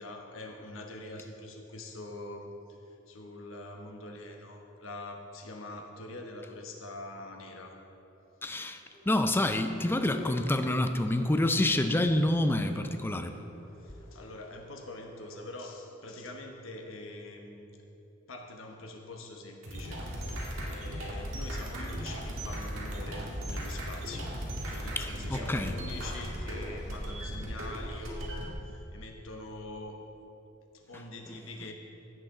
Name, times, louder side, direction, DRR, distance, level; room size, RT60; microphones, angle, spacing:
voice 1, 0.0-2.5 2.9-7.8 13.8-17.7 18.3-24.3 24.7-30.0 30.7-31.7, left 2 dB, 80° left, 2 dB, 1.2 m, -44 dB
voice 2, 8.4-13.4 25.0-25.8, left 1 dB, 10° left, 8 dB, 0.4 m, -28 dB
sound 1, 8.8-15.4, left 3 dB, 50° left, 2.4 m, -49 dB
sound 2, 19.6-28.5, equal, 80° right, 1.8 m, -37 dB
16.0 x 6.5 x 3.8 m, 2.9 s
head